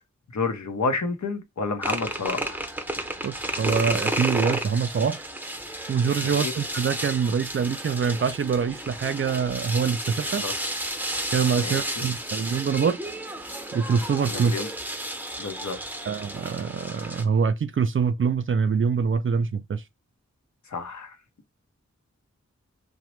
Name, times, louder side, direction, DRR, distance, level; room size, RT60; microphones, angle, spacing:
voice 1, 0.3-2.6 6.2-6.5 10.4-10.5 11.6-12.1 14.3-14.7 15.4-15.8 20.7-21.1, left 4 dB, 70° left, 0.7 m, -30 dB
sound 1, 1.8-17.2, right 1 dB, 5° right, 0.7 m, -32 dB
voice 2, 3.2-5.2 5.9-10.5 11.3-13.0 13.7-14.5 16.1-19.8, right 6 dB, 45° right, 0.4 m, -25 dB
2.9 x 2.1 x 3.0 m
cardioid pair, 45°, 29 cm